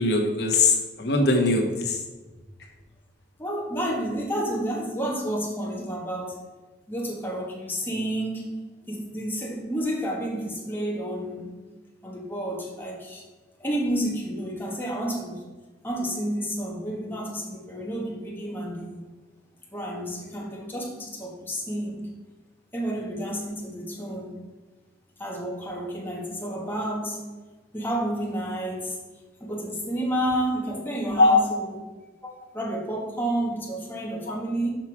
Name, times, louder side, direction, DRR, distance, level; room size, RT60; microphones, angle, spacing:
voice 1, 0.0-2.0 31.2-31.4 34.3-34.4, left 3 dB, 60° left, 2 dB, 1.2 m, -21 dB
voice 2, 3.4-6.4 6.9-8.5 8.8-11.5 12.0-13.2 13.6-15.4 15.8-19.0 19.7-22.0 22.7-24.3 25.2-27.2 27.7-29.0 29.4-31.7 32.2-34.7, right 1 dB, 10° left, -2 dB, 1.4 m, -30 dB
6.6 x 6.0 x 4.7 m, 1.3 s
head